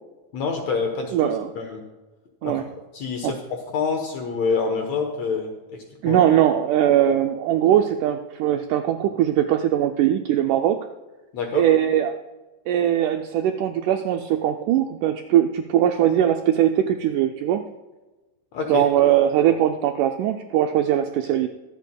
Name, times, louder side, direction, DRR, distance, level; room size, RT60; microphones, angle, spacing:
voice 1, 0.3-1.2 1.6-1.8 2.4-2.6 2.9-6.2 11.3-11.6 18.5-18.9, left 5 dB, 65° left, 4 dB, 1.8 m, -27 dB
voice 2, 1.1-1.5 2.4-2.6 3.2-3.3 6.0-10.8 11.5-12.2 12.7-17.6 18.7-21.5, right 11 dB, 85° right, 6 dB, 1.8 m, -20 dB
22.5 x 8.2 x 2.2 m, 1.2 s
omnidirectional pair, 4.1 m